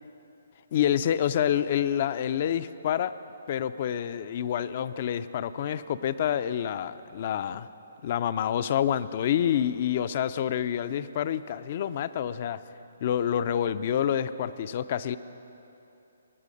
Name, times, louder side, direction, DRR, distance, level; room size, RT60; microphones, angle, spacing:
voice 1, 0.7-3.1 3.5-7.7 8.0-12.6 13.0-15.2, left 9 dB, 45° left, 14 dB, 0.4 m, -27 dB
19.5 x 8.3 x 5.2 m, 2.9 s
figure-of-eight pair, 140°, 0 cm